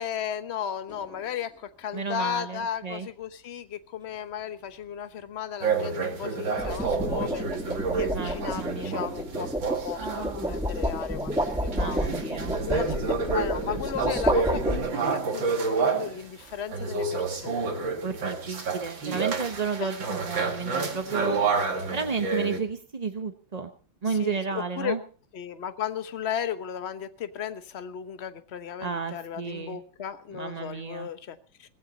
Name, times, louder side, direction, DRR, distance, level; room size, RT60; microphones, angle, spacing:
voice 1, 0.0-9.5 9.8-17.8 19.8-19.9 24.1-25.0 25.3-31.7, left 9 dB, 40° left, 11 dB, 1.1 m, -35 dB
sound 1, 0.9-1.2 6.3-15.2, equal, 5° right, 1.2 m, -30 dB
voice 2, 1.9-3.1 8.1-8.9 11.7-12.5 18.0-21.4 21.9-23.7 24.0-25.0 28.8-29.8 30.3-31.1, right 5 dB, 35° right, 7 dB, 0.6 m, -32 dB
sound 2, 5.6-16.2 16.7-22.6, right 4 dB, 75° right, 3.0 m, -29 dB
18.5 x 15.5 x 4.0 m, 0.37 s
omnidirectional pair, 2.1 m